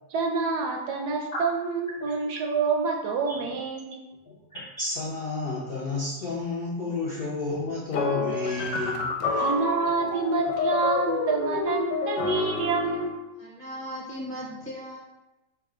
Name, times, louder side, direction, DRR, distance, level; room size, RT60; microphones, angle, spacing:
voice 1, 0.1-4.0 9.4-13.3, right 4 dB, 75° right, 2 dB, 1.1 m, -27 dB
voice 2, 4.3-9.4, left 2 dB, 60° left, -5 dB, 0.5 m, -31 dB
sound 1, 7.9-13.2, left 4 dB, 75° left, 1.2 m, -29 dB
voice 3, 13.4-15.0, equal, 30° left, -6 dB, 1.1 m, -37 dB
4.6 x 2.3 x 4.8 m, 1.0 s
omnidirectional pair, 1.9 m